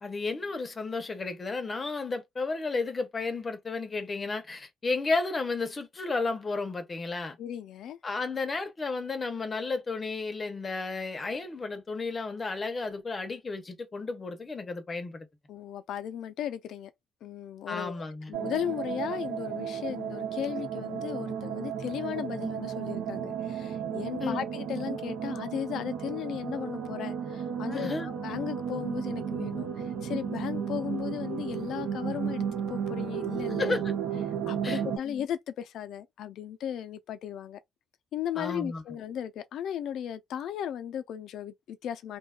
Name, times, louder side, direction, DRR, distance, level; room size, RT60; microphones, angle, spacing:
voice 1, 0.0-7.4 8.0-15.3 17.7-18.3 24.2-24.4 27.7-28.1 33.6-33.9 34.6-34.8 35.1-35.2 38.4-38.8, left 3 dB, 35° left, 0.6 m, -33 dB
voice 2, 7.4-8.0 15.5-16.9 17.2-33.7 34.5-37.6 38.1-42.2, left 9 dB, 75° left, 0.4 m, -36 dB
sound 1, 18.3-35.0, right 8 dB, 85° right, 0.6 m, -34 dB
2.7 x 2.2 x 2.3 m
cardioid pair, 90°, 0 cm